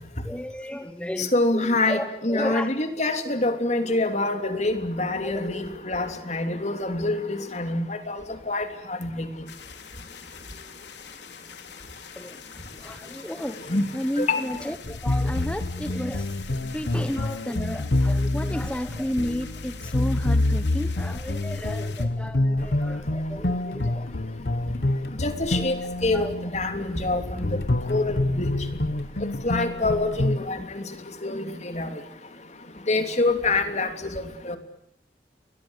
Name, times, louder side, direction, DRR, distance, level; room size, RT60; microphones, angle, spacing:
voice 1, 0.2-2.7 5.2-5.3 12.2-12.4 12.8-13.6 13.9-24.1 24.8-24.9 25.5-25.7 26.1-26.3, equal, 5° left, 8 dB, 1.2 m, -33 dB
voice 2, 1.2-8.2 8.5-9.3 13.7-13.8 14.2-14.4 25.2-25.7 26.0-27.5 27.9-28.5 29.4-30.8 31.2-31.9 32.9-33.9 34.5-34.6, left 2 dB, 40° left, 7 dB, 3.1 m, -26 dB
sound 1, 9.5-22.1, left 7 dB, 80° left, 3.3 m, -45 dB
sound 2, 14.8-30.4, left 1 dB, 65° left, 1.1 m, -27 dB
30.0 x 22.5 x 8.2 m, 0.71 s
head